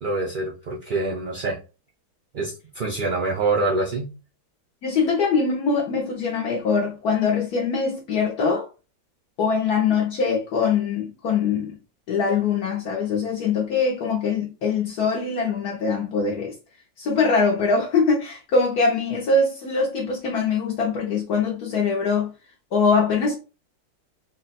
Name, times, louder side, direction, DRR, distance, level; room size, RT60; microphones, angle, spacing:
voice 1, 0.0-1.6 2.3-4.1, right 3 dB, 60° right, 0.5 m, -25 dB
voice 2, 4.8-8.7 9.4-11.8 12.1-16.5 17.0-22.3 22.7-23.4, left 4 dB, 70° left, 1.3 m, -22 dB
4.0 x 2.1 x 4.1 m
omnidirectional pair, 1.8 m